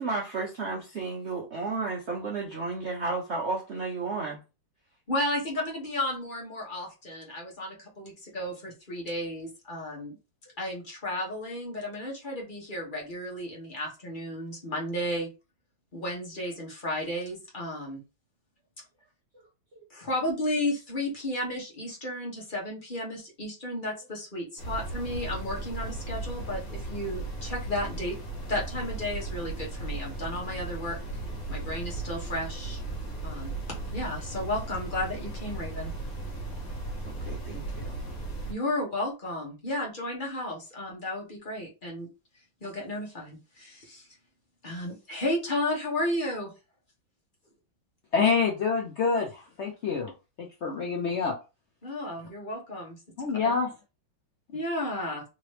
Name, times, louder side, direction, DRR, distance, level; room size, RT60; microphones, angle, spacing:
voice 1, 0.0-4.4 19.7-19.8 37.2-38.0, right 3 dB, 60° right, 0.7 m, -33 dB
voice 2, 5.1-10.2 10.6-15.3 15.9-18.0 19.9-28.2 28.5-31.0 31.5-32.8 33.2-33.5 33.9-35.9 38.5-42.1 42.6-44.1 44.6-46.5 51.8-53.0 53.4-53.5 54.5-55.2, left 1 dB, 30° left, 1.1 m, -33 dB
sound 1, 24.6-38.5, right 2 dB, 50° left, 1.6 m, -36 dB
voice 3, 48.1-50.1 50.4-51.3 53.2-53.7, left 5 dB, 85° left, 0.6 m, -27 dB
3.5 x 2.9 x 3.2 m
omnidirectional pair, 2.1 m